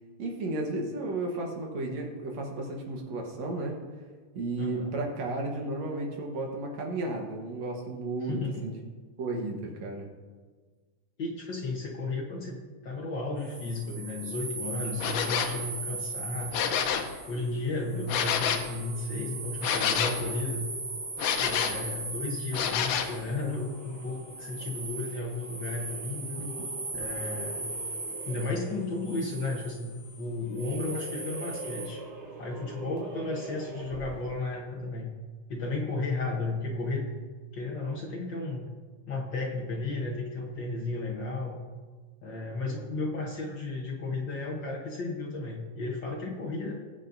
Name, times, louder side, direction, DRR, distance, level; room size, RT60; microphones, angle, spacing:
voice 1, 0.2-3.8 4.4-8.8 9.2-10.1 26.4-26.7, right 2 dB, 60° right, 1 dB, 2.3 m, -33 dB
voice 2, 4.6-4.9 8.2-8.7 11.2-12.6 12.8-16.7 17.3-20.7 21.4-26.4 26.9-27.7 28.3-32.0 32.4-35.1 35.5-37.1 37.5-38.7 39.1-41.6 42.2-46.7, left 3 dB, 70° left, -1 dB, 1.0 m, -34 dB
sound 1, 13.4-31.9, right 3 dB, 45° right, 3.8 m, -39 dB
sound 2, 15.0-15.6 16.4-17.1 18.1-18.7 19.6-20.3 21.2-21.8 22.5-23.2, left 8 dB, 90° left, 2.4 m, -28 dB
sound 3, 18.8-34.5, right 3 dB, 80° right, 3.4 m, -45 dB
20.0 x 7.4 x 2.6 m, 1.4 s
omnidirectional pair, 3.7 m